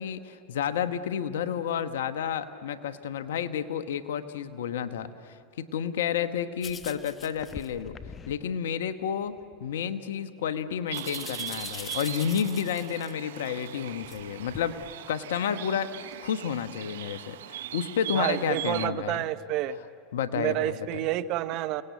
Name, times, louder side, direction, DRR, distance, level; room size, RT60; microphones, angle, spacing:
voice 1, 0.0-8.0 8.3-9.3 9.6-14.7 15.1-15.9 16.2-19.2 20.1-20.8, left 8 dB, 80° left, 11 dB, 1.0 m, -31 dB
sound 1, 6.6-8.5 9.2-9.7 10.9-13.1 14.0-15.0 15.5-15.6 16.1-16.2 17.3-17.4, left 6 dB, 30° left, 0.9 m, -43 dB
Bird, 10.9-18.9, right 13 dB, 80° right, 0.6 m, -40 dB
voice 2, 18.1-19.8 20.3-21.8, right 14 dB, 55° right, 14 dB, 0.8 m, -29 dB
29.0 x 19.0 x 8.4 m, 2.5 s
hypercardioid pair, 100°, 0 cm